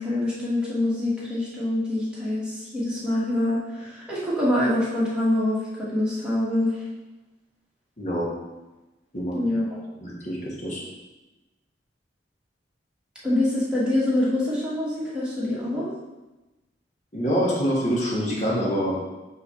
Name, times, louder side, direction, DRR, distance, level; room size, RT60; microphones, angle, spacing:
voice 1, 0.0-6.8 9.3-9.6 13.2-15.9, left 1 dB, 5° right, -8 dB, 1.7 m, -25 dB
voice 2, 8.0-8.3 9.1-9.4 10.0-10.8 17.1-19.0, equal, 40° left, -4 dB, 1.5 m, -25 dB
5.5 x 3.2 x 5.5 m, 1.1 s
head